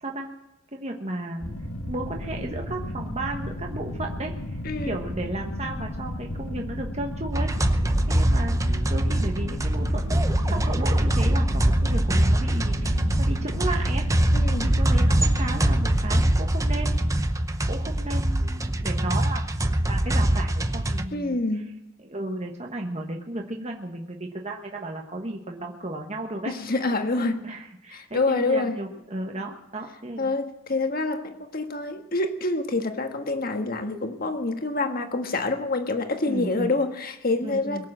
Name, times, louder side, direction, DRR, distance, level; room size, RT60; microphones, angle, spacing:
voice 1, 0.7-1.5 1.9-4.6 4.8-7.7 8.1-10.1 10.5-14.1 14.6-17.0 17.7-19.4 19.8-21.4 22.0-26.6 27.2-30.3 36.3-36.7 37.4-37.9, right 2 dB, 30° right, 1.2 m, -34 dB
sound 1, 1.4-16.0, left 1 dB, 85° left, 2.2 m, -34 dB
voice 2, 4.6-5.0 14.3-14.7 21.1-21.7 26.4-27.5 27.9-28.8 30.2-37.9, left 2 dB, 45° left, 1.6 m, -27 dB
sound 2, 7.3-21.0, right 1 dB, 15° right, 0.7 m, -23 dB
22.5 x 7.5 x 7.5 m
head